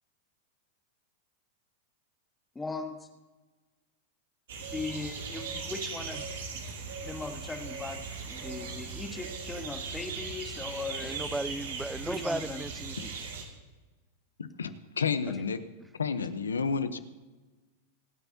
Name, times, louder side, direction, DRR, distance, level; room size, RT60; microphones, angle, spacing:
voice 1, 2.5-3.1 4.7-6.3 6.5-6.6 7.0-11.2 12.0-12.6, left 3 dB, 10° left, 5 dB, 1.5 m, -38 dB
sound 1, 4.5-13.4, right 4 dB, 75° right, 2.3 m, -39 dB
voice 2, 11.0-13.3 15.8-15.9, right 2 dB, 5° right, 18 dB, 0.5 m, -36 dB
voice 3, 14.4-15.6 16.0-17.0, left 5 dB, 90° left, 12 dB, 0.8 m, -30 dB
25.0 x 9.0 x 2.8 m, 1.2 s
hypercardioid pair, 100°, 0 cm